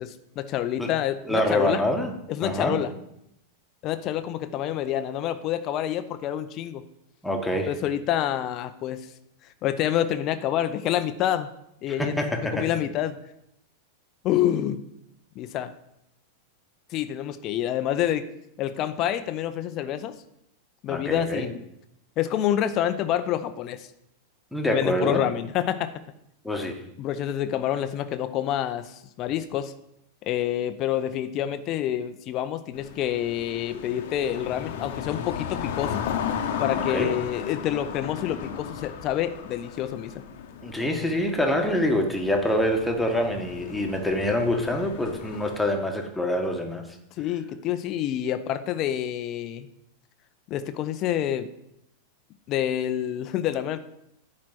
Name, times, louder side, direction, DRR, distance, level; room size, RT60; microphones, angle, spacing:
voice 1, 0.0-1.8 2.3-2.9 3.8-6.8 7.7-9.1 9.6-11.5 11.8-13.2 14.2-14.8 15.4-15.7 16.9-18.3 18.6-20.2 20.8-21.6 22.2-23.9 24.7-25.9 27.0-29.7 30.3-36.1 36.6-40.2 47.2-49.7 50.5-51.5 52.5-53.8, left 11 dB, 35° left, 10 dB, 0.6 m, -27 dB
voice 2, 1.3-2.1 2.4-2.8 7.2-7.7 11.9-12.7 20.9-21.5 24.5-25.2 26.4-26.8 36.8-37.1 40.6-46.8, left 1 dB, 5° left, 2 dB, 1.5 m, -25 dB
sound 1, 32.7-45.6, left 8 dB, 55° left, 1.0 m, -35 dB
10.5 x 4.3 x 7.7 m, 0.78 s
figure-of-eight pair, 90°, 0 cm